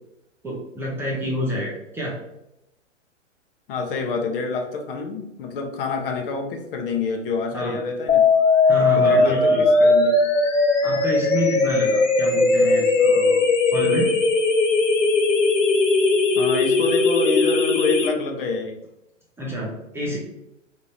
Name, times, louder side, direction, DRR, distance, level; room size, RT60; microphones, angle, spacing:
voice 1, 0.4-2.2 7.5-7.8 8.7-9.6 10.8-14.1 19.4-20.2, right 1 dB, 5° right, -5 dB, 0.6 m, -28 dB
voice 2, 3.7-8.2 8.8-10.2 16.3-18.8, left 4 dB, 45° left, 3 dB, 0.9 m, -27 dB
sound 1, 8.1-18.1, left 3 dB, 80° left, 1.0 m, -18 dB
3.6 x 2.9 x 4.1 m, 0.85 s
hypercardioid pair, 120°, 37 cm